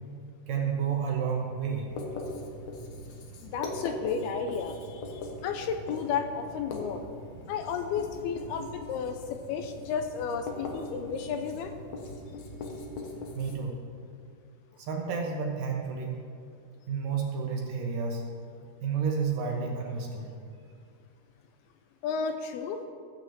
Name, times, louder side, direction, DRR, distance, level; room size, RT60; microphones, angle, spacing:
voice 1, 0.5-1.9 13.3-13.8 14.8-16.2 16.9-18.2 18.8-20.3, right 6 dB, 65° right, 0 dB, 2.4 m, -30 dB
Writing, 1.9-13.6, left 2 dB, 65° left, 1.9 m, -40 dB
voice 2, 3.4-7.0 7.5-11.7 22.0-22.8, left 6 dB, 80° left, 6 dB, 2.5 m, -33 dB
15.0 x 5.9 x 7.5 m, 2.2 s
omnidirectional pair, 4.8 m